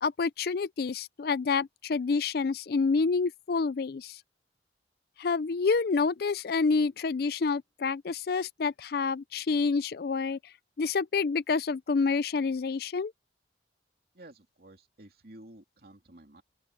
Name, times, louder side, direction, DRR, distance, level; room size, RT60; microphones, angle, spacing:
voice 1, 0.0-4.2 5.2-10.4 10.8-13.1, left 4 dB, 55° left, 0.4 m, -28 dB
voice 2, 14.1-16.4, right 1 dB, 55° right, 3.0 m, -52 dB
open air
head